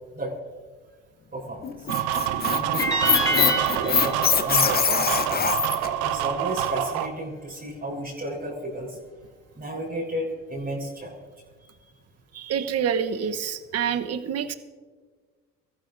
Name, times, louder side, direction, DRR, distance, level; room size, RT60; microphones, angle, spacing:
voice 1, 1.3-1.7 2.5-3.5 3.8-5.6 6.0-9.0 9.6-11.3, right 1 dB, 25° right, -3 dB, 4.2 m, -33 dB
Squeak, 1.6-5.9, left 7 dB, 25° left, 0.8 m, -23 dB
sound 1, 1.9-7.1, right 11 dB, 75° right, 1.0 m, -27 dB
sound 2, 2.8-5.9, equal, 10° left, 5.4 m, -29 dB
voice 2, 12.3-14.5, right 7 dB, 40° right, 9 dB, 1.1 m, -27 dB
25.0 x 14.0 x 2.6 m, 1.5 s
hypercardioid pair, 70°, 36 cm